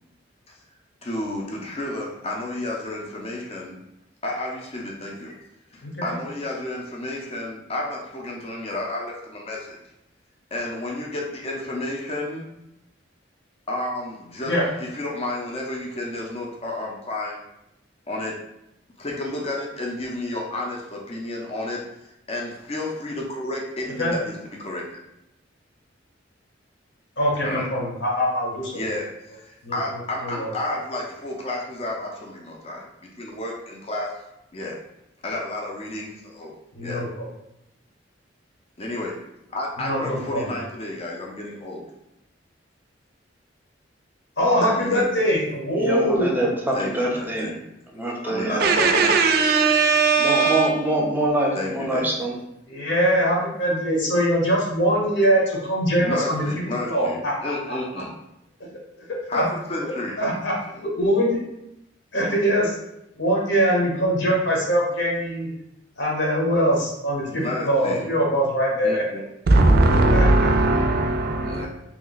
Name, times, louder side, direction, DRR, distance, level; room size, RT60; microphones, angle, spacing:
voice 1, 1.0-3.8 4.2-5.4 5.7-9.8 10.5-12.5 13.7-17.4 18.1-18.4 19.0-24.9 27.4-27.7 28.7-32.9 33.1-34.1 34.5-34.8 35.2-36.5 36.8-37.0 38.8-39.2 39.5-41.9 44.6-45.1 46.7-47.6 48.2-49.2 51.5-52.2 56.0-58.1 59.3-60.1 67.2-68.1 68.8-69.2 71.4-71.7, left 2 dB, 35° left, -1 dB, 0.5 m, -31 dB
voice 2, 5.8-6.1 14.5-14.6 24.0-24.1 27.2-29.0 29.6-29.8 30.2-30.5 36.7-37.3 39.8-40.4 44.4-46.5 50.4-50.5 52.7-56.4 56.9-57.8 59.1-59.5 60.2-61.4 62.1-62.7 63.2-65.5 66.0-69.0 70.1-70.8, equal, 70° left, -2 dB, 1.0 m, -23 dB
voice 3, 45.7-47.5 47.9-49.1 50.2-52.3, right 1 dB, 10° right, -1 dB, 0.6 m, -25 dB
voice 4, 48.6-50.7 69.5-71.7, right 3 dB, 55° right, 5 dB, 0.4 m, -18 dB
3.0 x 2.2 x 3.9 m, 0.85 s
head